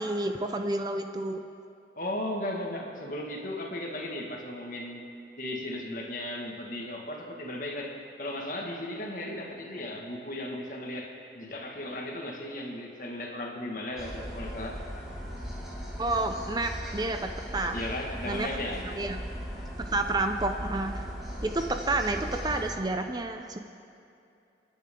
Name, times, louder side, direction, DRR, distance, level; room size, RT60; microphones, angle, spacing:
voice 1, 0.0-1.4 16.0-17.8 18.3-18.5 18.8-19.2 19.8-21.1 21.4-23.6, right 2 dB, 25° right, 6 dB, 0.5 m, -30 dB
voice 2, 2.0-5.0 5.4-14.8 17.7-18.9, left 1 dB, 50° left, 0 dB, 1.9 m, -36 dB
sound 1, 14.0-22.8, equal, ahead, 3.0 m, -38 dB
29.0 x 10.0 x 3.8 m, 2.6 s
head